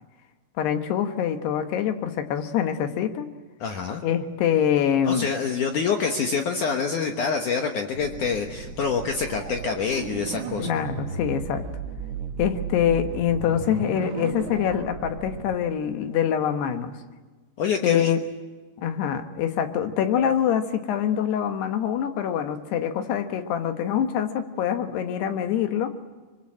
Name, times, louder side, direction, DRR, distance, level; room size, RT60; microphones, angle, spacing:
voice 1, 0.6-3.3 4.0-5.3 10.6-11.6 12.4-16.9 17.8-18.2 18.8-25.9, left 9 dB, 85° left, 7 dB, 3.5 m, -25 dB
voice 2, 3.6-4.0 5.0-10.7 17.6-18.1, left 5 dB, 65° left, 3 dB, 2.3 m, -26 dB
sound 1, 7.9-15.5, right 5 dB, 80° right, 1.1 m, -35 dB
24.0 x 23.5 x 7.5 m, 1.3 s
omnidirectional pair, 4.6 m